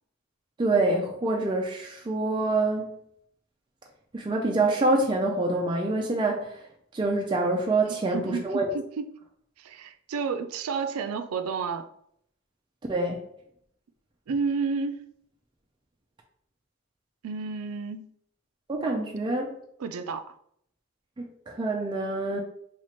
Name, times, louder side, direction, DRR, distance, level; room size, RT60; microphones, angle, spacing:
voice 1, 0.6-2.8 4.1-6.6 6.9-8.7 12.9-13.2 18.7-19.6 21.2-22.4, right 2 dB, 20° right, 0.3 m, -26 dB
voice 2, 7.9-9.1 9.6-11.9 14.3-15.1 17.2-18.1 19.8-20.3, right 5 dB, 90° right, 0.4 m, -31 dB
3.0 x 2.4 x 4.2 m
head